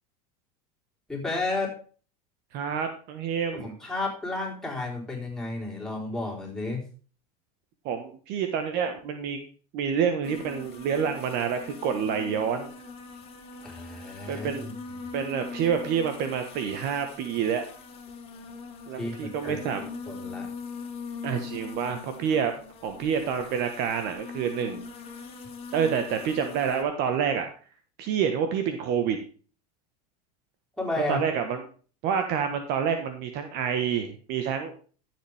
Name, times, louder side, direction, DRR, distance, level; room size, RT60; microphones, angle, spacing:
voice 1, 1.1-1.8 3.5-6.8 13.6-14.7 18.9-20.5 30.8-31.2, left 2 dB, ahead, -3 dB, 4.1 m, -32 dB
voice 2, 2.5-3.8 7.8-9.4 9.7-12.7 14.3-14.7 15.1-17.6 18.9-19.9 21.2-22.5 22.8-24.8 25.7-27.5 28.0-29.2 31.1-31.6 32.0-34.7, right 7 dB, 55° right, 7 dB, 1.4 m, -28 dB
sound 1, 10.2-26.8, left 5 dB, 30° left, 2.3 m, -41 dB
12.5 x 7.5 x 3.5 m, 0.40 s
supercardioid pair, 125°, 20 cm